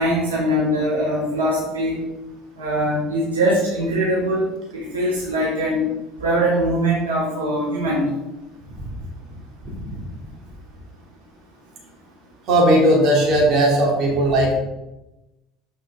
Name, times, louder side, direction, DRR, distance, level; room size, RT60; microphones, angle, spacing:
voice 1, 0.0-2.0 2.6-4.5 4.7-5.8 6.2-8.1, right 1 dB, 80° right, -6 dB, 1.7 m, -21 dB
voice 2, 12.5-14.6, right 1 dB, 50° right, -1 dB, 2.8 m, -17 dB
7.4 x 5.4 x 3.7 m, 0.98 s
figure-of-eight pair, 65°, 0 cm